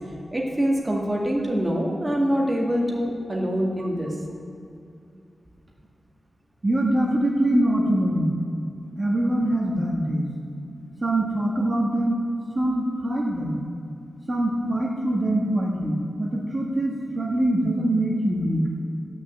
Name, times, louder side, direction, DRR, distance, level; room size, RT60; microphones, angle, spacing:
voice 1, 0.3-4.1, equal, 20° right, -2 dB, 1.9 m, -24 dB
voice 2, 6.6-8.3 9.0-10.3 11.0-12.2 12.5-13.5 14.3-18.6, right 1 dB, 35° right, -4 dB, 1.7 m, -23 dB
11.5 x 6.4 x 7.5 m, 2.6 s
wide cardioid pair, 105°, 0 cm